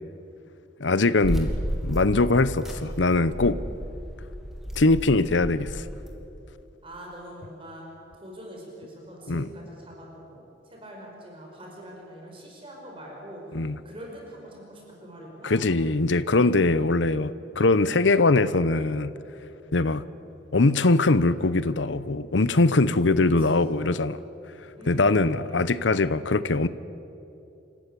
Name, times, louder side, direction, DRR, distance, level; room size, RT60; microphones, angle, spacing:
voice 1, 0.8-1.5 1.8-3.6 4.8-5.8 9.3-9.5 13.5-13.8 15.4-19.2 19.7-20.1 20.5-24.2 24.9-26.7, left 3 dB, 80° left, 15 dB, 0.8 m, -22 dB
sound 1, 1.2-6.1, equal, ahead, 2.7 m, -33 dB
voice 2, 6.8-7.9 8.2-15.6 23.2-23.8 24.8-25.7, right 1 dB, 30° right, -1 dB, 5.2 m, -44 dB
28.5 x 15.0 x 9.9 m, 2.8 s
head